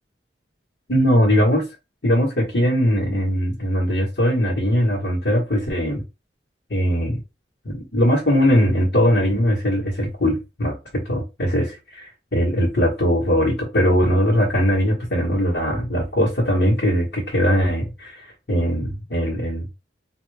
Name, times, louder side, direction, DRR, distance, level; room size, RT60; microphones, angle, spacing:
voice 1, 0.9-1.7 2.0-6.0 6.7-7.2 7.6-10.8 11.0-19.7, equal, 65° left, 1.4 m, -20 dB
3.3 x 2.8 x 3.4 m
head